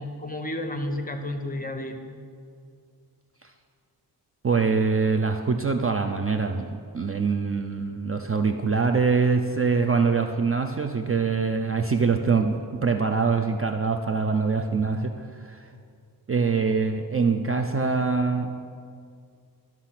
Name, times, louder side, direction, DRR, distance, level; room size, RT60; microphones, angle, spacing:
voice 1, 0.0-2.0, left 1 dB, 20° left, 6 dB, 0.8 m, -31 dB
voice 2, 4.4-15.7 16.3-18.5, right 4 dB, 35° right, 6 dB, 0.4 m, -24 dB
12.0 x 6.0 x 5.8 m, 2.2 s
wide cardioid pair, 115°, 40 cm